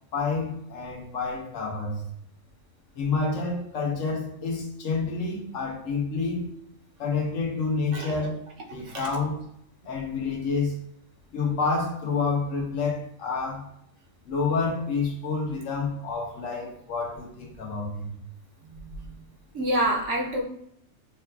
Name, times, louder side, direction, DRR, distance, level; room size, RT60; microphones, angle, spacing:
voice 1, 0.1-2.0 2.9-6.5 7.0-8.4 8.7-9.4 9.8-10.8 11.3-13.7 14.3-18.1, left 4 dB, 80° left, 0 dB, 1.3 m, -28 dB
voice 2, 8.7-9.1 18.6-19.1 19.5-20.4, right 1 dB, 70° right, 0 dB, 1.1 m, -28 dB
6.9 x 2.3 x 2.3 m, 0.72 s
omnidirectional pair, 1.3 m